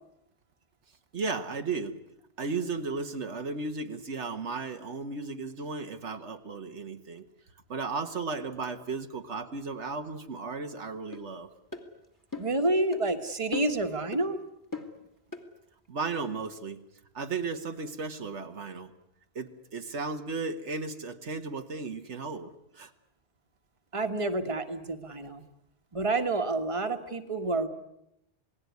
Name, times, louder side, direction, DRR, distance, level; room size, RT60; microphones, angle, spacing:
voice 1, 1.1-2.0 2.4-7.2 7.7-11.5 15.9-16.8 17.1-18.9 19.3-22.9, right 4 dB, 75° right, 7 dB, 1.7 m, -35 dB
sound 1, 11.1-11.2 11.7-11.9 12.3-12.6 12.9-13.1 13.5-13.8 14.1-14.3 14.7-15.0 15.3-15.5, left 4 dB, 15° left, 2.3 m, -38 dB
voice 2, 12.4-14.4 23.9-25.4 25.9-27.7, right 2 dB, 25° right, 6 dB, 1.7 m, -29 dB
28.0 x 19.0 x 9.5 m, 0.80 s
omnidirectional pair, 1.2 m